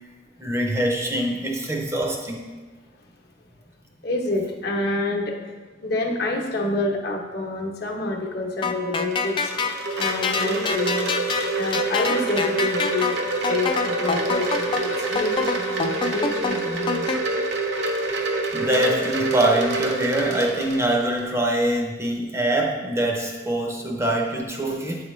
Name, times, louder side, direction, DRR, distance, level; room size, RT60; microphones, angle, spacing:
voice 1, 0.4-2.4 18.5-25.1, right 1 dB, 15° right, 0 dB, 0.6 m, -24 dB
voice 2, 4.0-5.5 5.8-11.2 11.6-13.2 13.5-17.2, left 2 dB, 60° left, 0 dB, 0.9 m, -28 dB
sound 1, 8.6-17.2, left 5 dB, 25° left, 0.3 m, -26 dB
Wind chime, 9.0-21.2, right 2 dB, 65° right, 0.8 m, -27 dB
8.0 x 4.8 x 3.1 m, 1.3 s
head